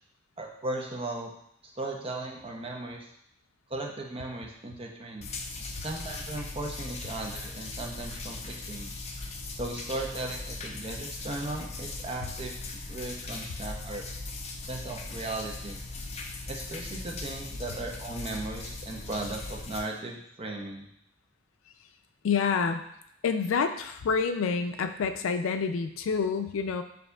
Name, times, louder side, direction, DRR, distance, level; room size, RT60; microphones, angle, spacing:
voice 1, 0.4-1.3 1.7-3.1 3.7-5.3 5.8-8.9 9.6-12.5 12.9-14.0 14.6-15.8 16.5-20.9, right 2 dB, 30° right, 1 dB, 0.6 m, -37 dB
sound 1, 5.2-19.8, left 3 dB, 35° left, 0.5 m, -39 dB
voice 2, 22.2-22.8 23.2-26.8, left 5 dB, 90° left, 8 dB, 0.4 m, -28 dB
6.7 x 2.7 x 2.3 m, 0.74 s
head